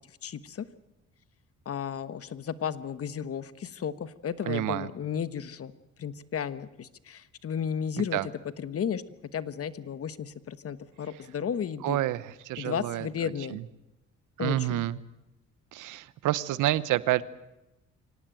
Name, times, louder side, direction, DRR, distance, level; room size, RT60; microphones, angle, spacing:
voice 1, 0.2-0.6 1.6-5.7 6.0-8.3 8.6-9.0 9.3-12.0 12.6-13.6 14.4-14.8, left 8 dB, 50° left, 14 dB, 1.2 m, -33 dB
voice 2, 4.5-4.9 8.1-8.3 11.8-13.6 14.4-15.0 15.7-17.2, right 15 dB, 85° right, 17 dB, 1.0 m, -29 dB
25.0 x 18.0 x 9.1 m, 0.96 s
cardioid pair, 90°, 30 cm